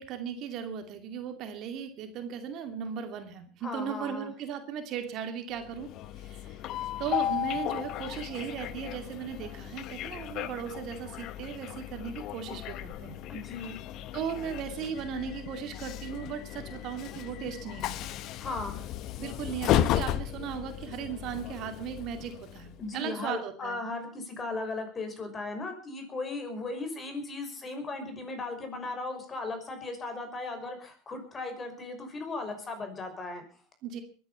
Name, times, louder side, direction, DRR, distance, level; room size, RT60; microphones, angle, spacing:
voice 1, 0.0-5.9 6.2-6.6 7.0-13.2 14.1-18.1 19.2-23.8 33.8-34.0, right 7 dB, 55° right, 7 dB, 2.5 m, -37 dB
voice 2, 3.6-4.3 13.3-13.8 18.4-18.8 22.8-33.4, left 3 dB, 30° left, 6 dB, 5.8 m, -37 dB
Train, 5.6-22.9, left 12 dB, 55° left, 1.0 m, -35 dB
22.5 x 10.0 x 5.7 m, 0.41 s
hypercardioid pair, 85°, 0 cm